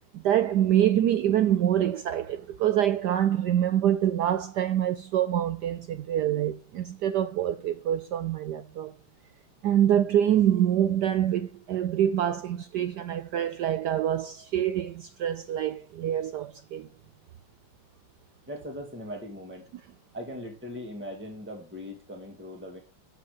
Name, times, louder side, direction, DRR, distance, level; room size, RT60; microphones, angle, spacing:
voice 1, 0.2-8.9 9.6-16.9, right 11 dB, 75° right, 0.9 m, -25 dB
voice 2, 18.5-19.7 20.1-22.8, equal, 5° right, 2.0 m, -39 dB
8.1 x 6.7 x 6.6 m
omnidirectional pair, 2.3 m